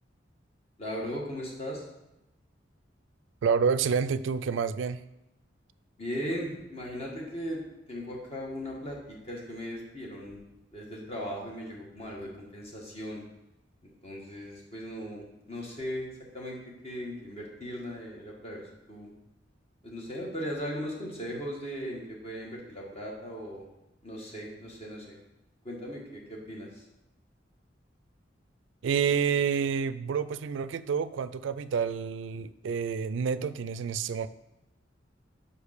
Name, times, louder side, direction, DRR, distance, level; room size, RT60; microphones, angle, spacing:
voice 1, 0.8-1.9 6.0-7.6 7.9-10.4 10.7-13.2 14.0-16.1 16.3-19.1 19.8-23.6 24.0-25.2 25.6-26.8, equal, 35° left, -2 dB, 1.8 m, -38 dB
voice 2, 3.4-5.0 28.8-34.3, right 6 dB, 85° right, 14 dB, 0.4 m, -28 dB
5.5 x 5.1 x 6.5 m, 0.93 s
head